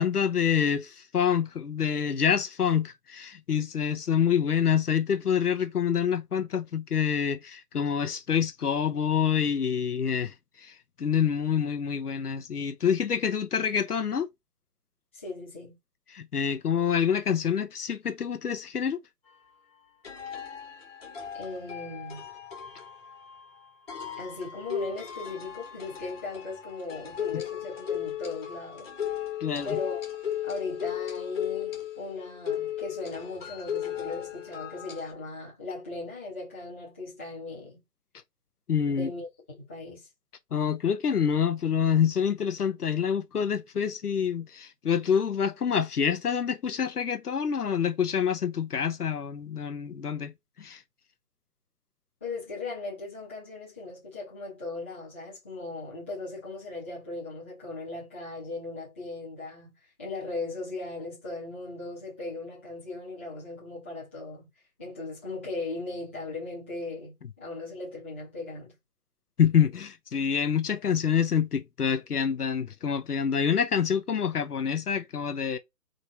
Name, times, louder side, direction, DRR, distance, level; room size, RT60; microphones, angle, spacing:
voice 1, 0.0-14.3 16.1-19.0 27.3-27.4 29.4-29.8 38.7-39.1 40.5-50.3 50.6-50.8 69.4-75.6, left 7 dB, 65° left, 0.9 m, -27 dB
voice 2, 15.1-15.8 21.3-22.2 24.2-28.9 29.6-30.0 30.4-37.8 38.8-39.3 39.6-40.1 52.2-64.5 64.8-68.7, left 3 dB, 10° left, 1.1 m, -38 dB
sound 1, 19.3-19.4 20.0-35.1, left 9 dB, 40° left, 1.8 m, -36 dB
3.7 x 3.3 x 4.1 m
hypercardioid pair, 175°, 49 cm